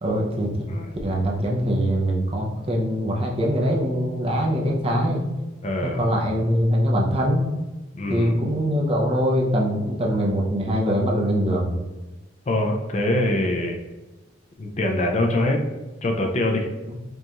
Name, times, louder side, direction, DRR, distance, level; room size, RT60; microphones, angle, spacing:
voice 1, 0.0-0.7 1.0-5.3 5.8-7.5 8.1-11.8 16.9-17.0, equal, 30° right, -1 dB, 0.6 m, -23 dB
voice 2, 5.6-6.0 7.9-8.3 12.5-13.8 14.6-15.6 16.0-16.7, left 1 dB, 35° left, 2 dB, 0.4 m, -23 dB
5.2 x 2.4 x 2.9 m, 1.1 s
head